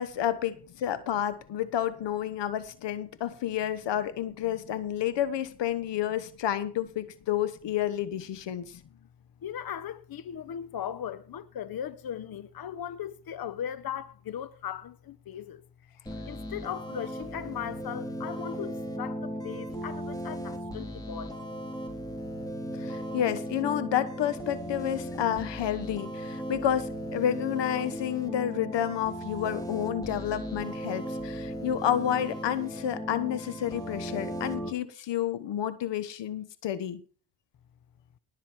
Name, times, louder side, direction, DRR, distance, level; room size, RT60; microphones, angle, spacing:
voice 1, 0.0-8.6 22.8-37.0, left 10 dB, 80° left, 1.2 m, -30 dB
voice 2, 8.6-8.9 9.4-15.9 16.3-21.3, left 9 dB, 60° left, 0.9 m, -38 dB
sound 1, 16.1-34.7, equal, 10° left, 3.6 m, -37 dB
19.0 x 7.4 x 4.6 m
cardioid pair, 60°, 42 cm